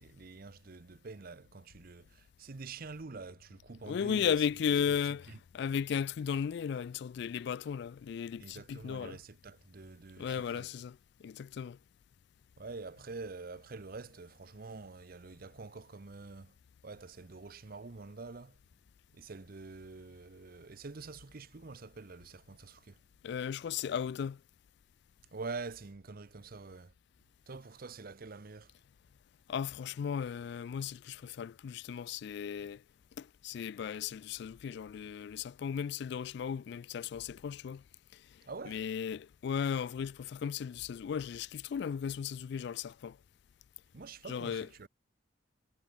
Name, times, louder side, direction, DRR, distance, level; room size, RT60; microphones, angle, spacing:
voice 1, 0.0-4.5 4.9-5.0 5.3-5.4 8.4-10.7 12.6-16.6 16.8-18.6 19.1-23.0 25.3-26.9 27.5-28.7 38.4-38.8 43.9-44.9, right 4 dB, 50° right, 0.7 m, -46 dB
voice 2, 3.9-9.2 10.2-11.8 23.2-24.4 29.5-32.8 33.2-37.8 38.1-38.2 38.7-43.2 44.3-44.7, left 7 dB, 65° left, 0.3 m, -35 dB
head